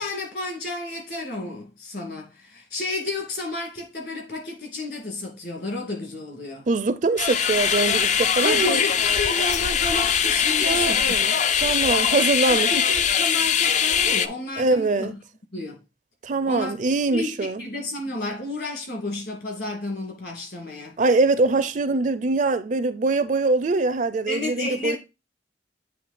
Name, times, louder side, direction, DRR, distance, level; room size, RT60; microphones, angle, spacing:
voice 1, 0.0-6.7 8.4-11.4 12.5-15.1 15.5-15.8 16.5-16.7 17.1-21.0 24.3-25.0, left 2 dB, 60° left, 2.4 m, -32 dB
voice 2, 6.7-8.8 10.6-11.3 11.6-12.8 14.6-15.1 16.2-17.6 21.0-25.0, right 3 dB, 45° right, 0.4 m, -23 dB
sound 1, 7.2-14.3, left 7 dB, 40° left, 0.4 m, -22 dB
8.5 x 3.1 x 4.3 m
head